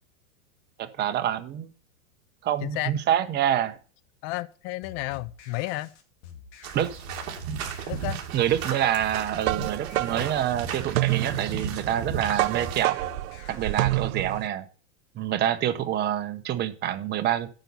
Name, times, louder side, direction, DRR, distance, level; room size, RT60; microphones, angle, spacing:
voice 1, 0.8-1.7 2.4-3.8 6.7-6.9 8.3-13.0 13.5-14.7 15.1-17.5, right 11 dB, 25° right, 1.0 m, -26 dB
voice 2, 2.6-2.9 4.2-5.9 7.9-8.2, left 18 dB, 35° left, 0.5 m, -32 dB
sound 1, 4.8-13.9, left 7 dB, 55° left, 2.4 m, -47 dB
sound 2, 6.6-12.8, right 7 dB, 45° right, 2.6 m, -35 dB
sound 3, 9.0-14.5, right 18 dB, 80° right, 0.5 m, -28 dB
9.1 x 5.4 x 6.8 m
supercardioid pair, 135°, 40 cm